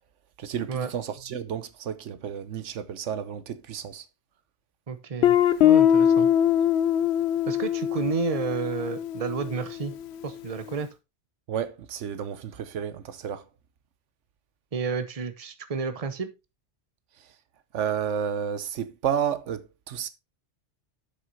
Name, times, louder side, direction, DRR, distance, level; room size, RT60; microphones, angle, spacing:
voice 1, 0.4-4.0 11.5-13.4 17.7-20.1, right 8 dB, 85° right, 1.1 m, -31 dB
voice 2, 4.9-6.3 7.5-9.9 10.2-10.9 14.7-16.3, right 5 dB, 35° right, 0.9 m, -31 dB
Guitar, 5.2-9.9, left 10 dB, 65° left, 0.9 m, -22 dB
7.8 x 6.5 x 4.0 m
omnidirectional pair, 1.2 m